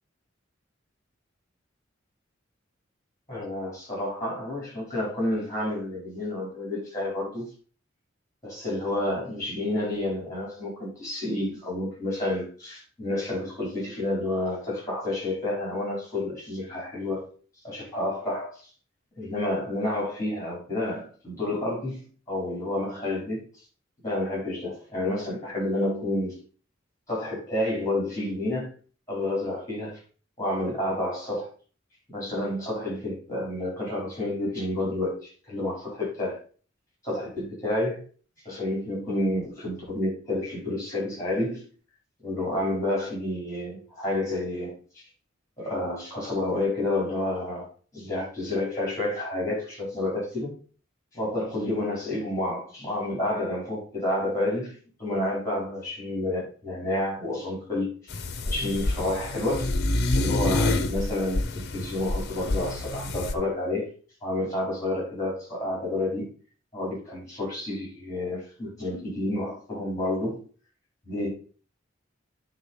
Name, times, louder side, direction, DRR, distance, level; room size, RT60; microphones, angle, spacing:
voice 1, 3.3-7.5 8.4-17.2 17.6-18.6 19.2-23.5 24.0-26.4 27.1-28.7 29.1-30.0 30.4-31.5 32.1-36.4 37.0-38.0 38.4-41.7 42.2-44.8 45.6-47.7 47.9-50.5 51.1-57.9 58.4-59.7 60.1-63.9 64.2-66.3 66.7-70.4 71.0-71.3, left 1 dB, 15° left, 4.9 m, -30 dB
sound 1, 58.1-63.3, left 2 dB, 55° left, 0.8 m, -27 dB
9.0 x 3.9 x 5.7 m
head